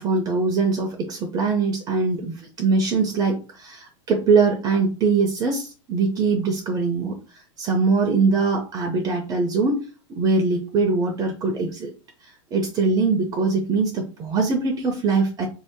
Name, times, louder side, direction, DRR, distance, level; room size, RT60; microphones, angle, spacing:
voice 1, 0.0-7.2 7.6-9.8 10.1-11.9 12.5-15.5, right 4 dB, 25° right, 3 dB, 0.6 m, -22 dB
2.9 x 2.8 x 4.4 m, 0.34 s
supercardioid pair, 145°, 17 cm